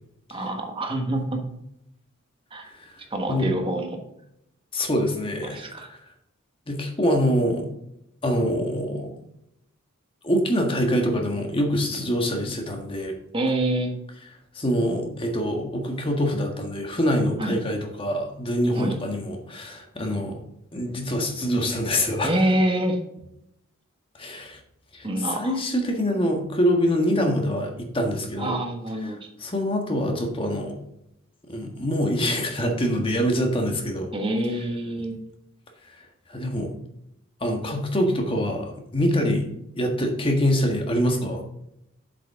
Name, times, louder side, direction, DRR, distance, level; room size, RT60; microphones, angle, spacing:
voice 1, 0.3-1.4 2.5-2.7 3.1-4.0 5.4-5.9 13.3-13.9 17.4-17.5 18.7-19.0 22.2-23.0 25.0-25.6 28.4-29.3 34.1-35.2, right 1 dB, 25° right, 3 dB, 1.3 m, -26 dB
voice 2, 4.7-6.0 6.7-7.6 8.2-9.1 10.2-13.1 14.5-20.4 20.7-22.3 24.2-24.6 24.9-28.5 29.4-30.7 31.5-34.1 36.3-36.7 37.4-39.5 39.7-41.4, equal, 25° left, 2 dB, 1.5 m, -25 dB
7.5 x 7.5 x 3.6 m, 0.80 s
head